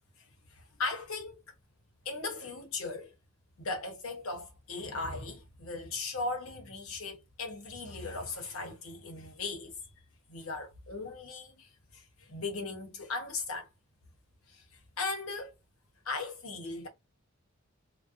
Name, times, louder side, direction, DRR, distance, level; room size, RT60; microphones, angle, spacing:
voice 1, 0.5-1.4 2.0-3.1 3.6-9.7 10.3-13.7 14.5-14.6 15.0-15.5 16.0-16.9, left 3 dB, 85° left, 0.9 m, -38 dB
2.5 x 2.2 x 2.4 m
head